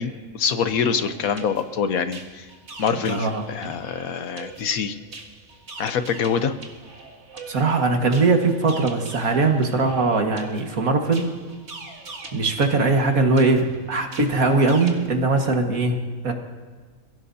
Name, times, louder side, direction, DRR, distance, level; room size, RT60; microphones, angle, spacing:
voice 1, 0.0-2.4 2.8-5.0 5.8-6.5, left 6 dB, 85° left, 10 dB, 1.4 m, -25 dB
sound 1, 0.7-15.1, right 3 dB, 55° right, 2.0 m, -43 dB
voice 2, 3.1-3.4 7.5-11.3 12.3-16.3, right 3 dB, 90° right, 3 dB, 2.1 m, -21 dB
29.5 x 17.0 x 2.8 m, 1.4 s
omnidirectional pair, 1.4 m